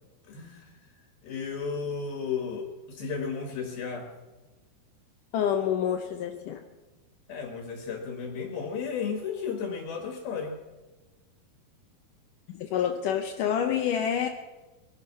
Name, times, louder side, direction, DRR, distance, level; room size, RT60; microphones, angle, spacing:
voice 1, 0.2-4.1 7.3-10.6, left 5 dB, 65° left, 3 dB, 3.1 m, -34 dB
voice 2, 5.3-6.6 12.5-14.3, left 9 dB, 85° left, 5 dB, 1.8 m, -27 dB
22.0 x 11.0 x 5.7 m, 1.2 s
omnidirectional pair, 4.8 m